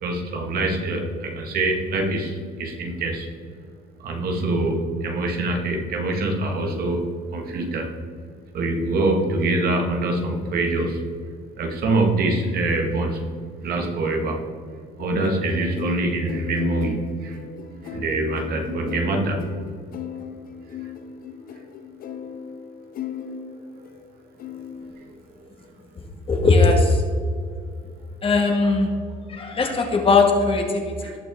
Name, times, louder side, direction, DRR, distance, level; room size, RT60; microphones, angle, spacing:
voice 1, 0.0-3.3 4.0-7.9 8.5-11.0 11.6-13.2 13.6-14.4 15.0-17.4 17.8-19.6 25.4-25.5 31.0-31.2, right 2 dB, 65° right, 1 dB, 1.9 m, -24 dB
sound 1, 15.0-24.1 24.4-24.9, left 7 dB, 60° left, 0.9 m, -36 dB
voice 2, 26.3-27.0 28.2-28.9 29.3-31.1, left 3 dB, 35° left, 2 dB, 1.9 m, -19 dB
18.0 x 6.1 x 3.7 m, 2.2 s
cardioid pair, 110°, 17 cm